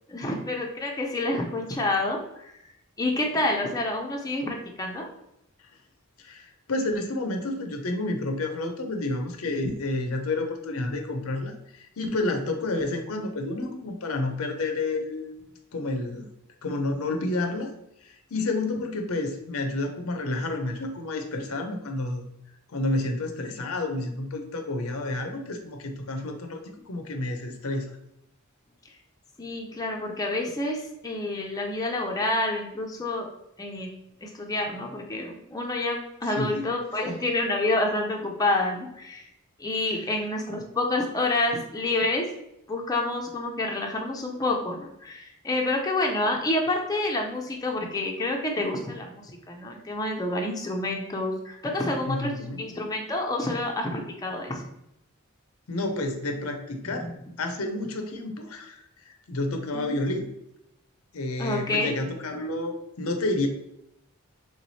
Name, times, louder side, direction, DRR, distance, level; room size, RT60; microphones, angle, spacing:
voice 1, 0.1-2.5 3.0-5.1 29.4-33.3 33.6-33.9 34.2-39.3 39.6-42.2 42.7-54.6 56.9-57.0 59.7-59.8 61.4-61.9, left 2 dB, 15° left, 0 dB, 0.6 m, -28 dB
voice 2, 6.2-15.3 15.7-16.3 16.6-17.7 18.0-22.2 22.7-27.9 36.3-36.7 52.1-52.7 55.7-57.1 57.4-60.3 61.1-63.5, left 2 dB, 75° left, 5 dB, 0.6 m, -30 dB
3.5 x 3.2 x 4.0 m, 0.80 s
head